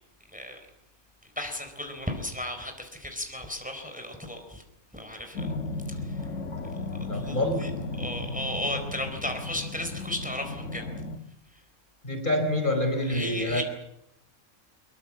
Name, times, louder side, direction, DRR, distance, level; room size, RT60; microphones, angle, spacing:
voice 1, 1.4-4.6 4.9-5.5 5.9-6.2 7.1-7.7 8.0-10.8 11.5-11.6 13.1-13.6, left 1 dB, 5° right, 5 dB, 4.2 m, -35 dB
sound 1, 5.4-11.2, left 2 dB, 60° left, 1.9 m, -35 dB
voice 2, 7.1-7.7 12.0-13.6, left 1 dB, 35° left, 5 dB, 4.8 m, -27 dB
24.5 x 23.0 x 7.5 m, 0.80 s
omnidirectional pair, 1.5 m